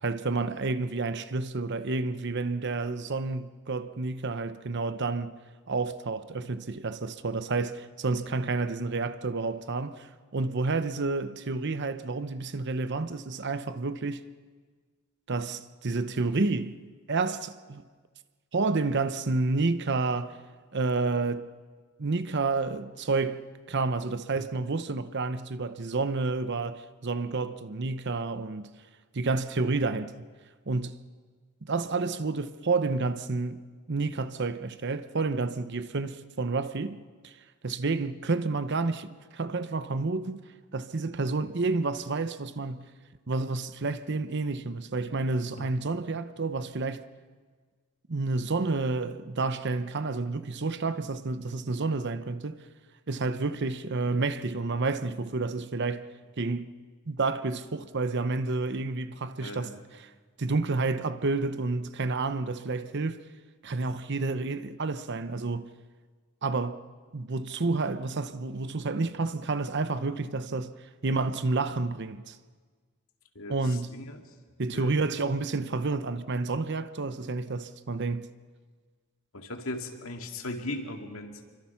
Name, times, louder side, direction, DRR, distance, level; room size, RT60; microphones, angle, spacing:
voice 1, 0.0-5.3 5.7-14.3 15.3-16.8 17.1-17.8 18.5-20.4 20.7-21.5 22.0-23.4 23.7-28.7 29.1-30.1 30.7-31.0 31.6-37.3 37.6-40.4 40.7-42.9 43.3-47.1 48.1-52.6 53.1-56.1 56.4-56.7 57.1-60.1 60.4-63.3 63.6-65.7 66.4-66.8 67.1-70.7 71.0-72.4 73.5-73.9 74.6-78.3, right 3 dB, 55° right, 0.8 m, -30 dB
voice 2, 59.4-59.8 73.4-74.2 74.7-75.0 79.3-81.4, left 2 dB, 70° left, 2.3 m, -38 dB
26.5 x 24.0 x 5.9 m
head